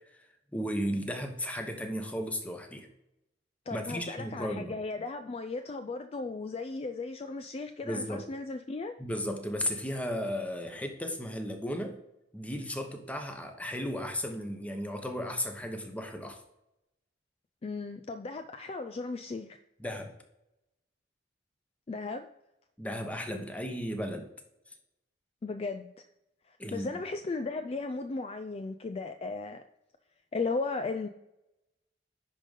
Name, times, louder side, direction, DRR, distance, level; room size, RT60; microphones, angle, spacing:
voice 1, 0.5-2.9 3.7-4.7 7.8-8.2 9.0-12.0 12.3-16.4 19.8-20.1 22.8-24.3 26.6-26.9, equal, 10° left, 5 dB, 1.0 m, -35 dB
voice 2, 3.7-8.9 17.6-19.6 21.9-22.3 25.4-26.0 26.5-29.6 30.3-31.1, left 3 dB, 35° left, 9 dB, 0.4 m, -36 dB
10.5 x 3.8 x 5.4 m, 0.88 s
head